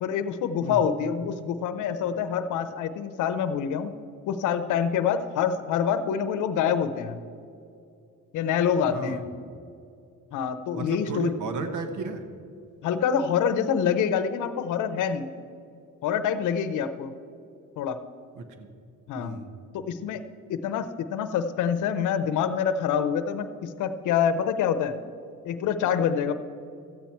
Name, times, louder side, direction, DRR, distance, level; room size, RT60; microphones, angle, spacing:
voice 1, 0.0-3.9 4.3-7.2 8.3-9.2 10.3-11.3 12.8-15.3 16.0-17.1 17.8-18.0 19.1-19.4 19.7-20.2 20.5-24.9 25.4-26.3, left 7 dB, 80° left, 11 dB, 0.7 m, -26 dB
voice 2, 8.9-9.2 10.7-12.2 18.3-18.7 19.2-19.5, right 3 dB, 75° right, 8 dB, 1.2 m, -33 dB
13.5 x 8.4 x 4.5 m, 2.5 s
cardioid pair, 90°, 30 cm